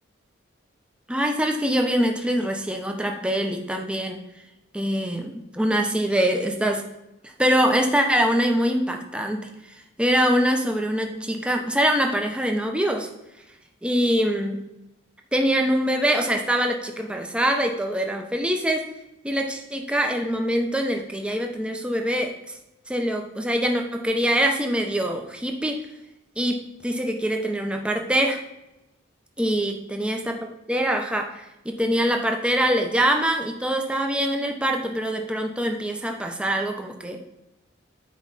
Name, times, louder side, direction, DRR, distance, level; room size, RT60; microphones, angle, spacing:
voice 1, 1.1-4.3 4.7-6.9 7.2-9.5 10.0-13.1 13.8-14.6 15.3-18.9 19.2-22.3 22.9-25.9 26.4-28.4 29.4-37.2, equal, 5° right, 3 dB, 0.7 m, -24 dB
9.5 x 4.8 x 4.1 m, 0.93 s
head